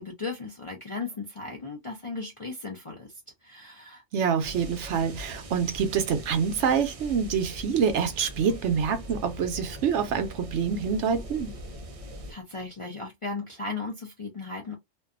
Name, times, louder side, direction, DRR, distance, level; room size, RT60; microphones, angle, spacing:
voice 1, 0.0-4.0 12.3-14.8, left 3 dB, 40° left, 0.4 m, -36 dB
voice 2, 4.1-11.6, right 6 dB, 75° right, 0.9 m, -26 dB
sound 1, 4.4-12.3, equal, 45° right, 0.4 m, -41 dB
2.6 x 2.2 x 2.4 m
omnidirectional pair, 1.3 m